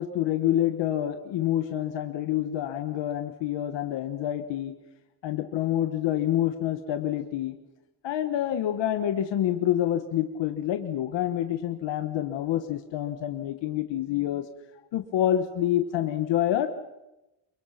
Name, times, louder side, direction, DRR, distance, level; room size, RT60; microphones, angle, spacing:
voice 1, 0.0-4.7 5.2-7.5 8.0-14.5 14.9-16.7, left 12 dB, 60° left, 7 dB, 1.5 m, -27 dB
29.5 x 23.0 x 5.9 m, 0.94 s
cardioid pair, 180°, 48 cm